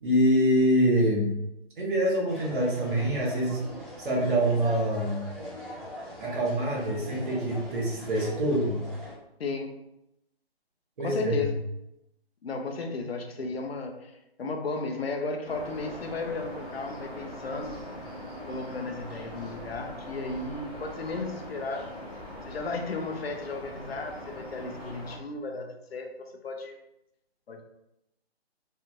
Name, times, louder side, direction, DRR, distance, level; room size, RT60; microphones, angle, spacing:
voice 1, 0.0-1.3 1.8-3.6 4.0-5.2 6.2-8.8 11.0-11.5, right 1 dB, 50° right, -3 dB, 1.3 m, -25 dB
sound 1, 2.3-9.1, equal, 15° right, 0.6 m, -41 dB
voice 2, 9.4-9.8 11.0-11.6 12.4-17.8 18.5-21.9 22.5-26.8 27.5-27.6, left 3 dB, 70° left, 4 dB, 0.7 m, -34 dB
sound 2, 15.4-25.2, equal, 5° left, 1.1 m, -41 dB
3.2 x 2.9 x 2.5 m, 0.86 s
figure-of-eight pair, 150°, 32 cm